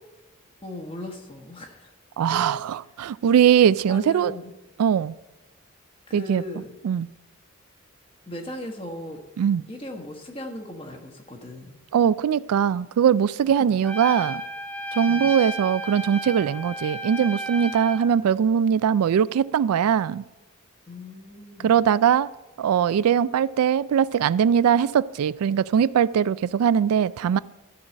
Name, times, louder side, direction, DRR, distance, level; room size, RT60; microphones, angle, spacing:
voice 1, 0.6-1.9 2.3-2.5 3.9-4.5 6.1-6.7 8.3-9.2 9.7-11.8 15.1-15.3 20.9-21.7, left 1 dB, 25° left, 1.3 m, -38 dB
voice 2, 2.2-4.3 4.8-5.2 6.1-6.4 6.8-7.1 9.4-9.6 11.9-14.4 14.9-20.2 21.6-22.3 22.6-27.4, right 8 dB, 85° right, 0.3 m, -21 dB
Trumpet, 13.8-18.1, equal, 5° left, 0.8 m, -33 dB
13.0 x 4.7 x 7.4 m
head